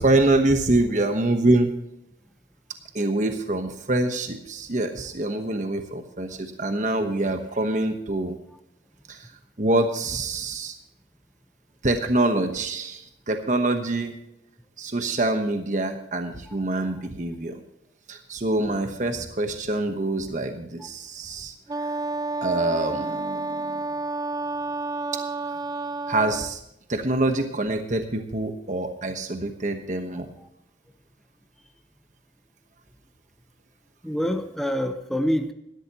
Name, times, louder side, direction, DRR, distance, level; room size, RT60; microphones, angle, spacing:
voice 1, 0.0-1.7 2.9-8.3 9.1-9.3 9.6-10.7 11.8-14.1 14.8-17.6 18.1-21.9 22.4-23.8 25.5-25.6 26.1-26.6 26.9-30.3, right 2 dB, 45° right, 6 dB, 1.1 m, -25 dB
Wind instrument woodwind instrument, 21.7-26.6, right 3 dB, 20° right, 0.3 m, -30 dB
voice 2, 34.0-35.5, equal, ahead, 6 dB, 0.9 m, -26 dB
17.5 x 13.0 x 3.0 m, 0.82 s
head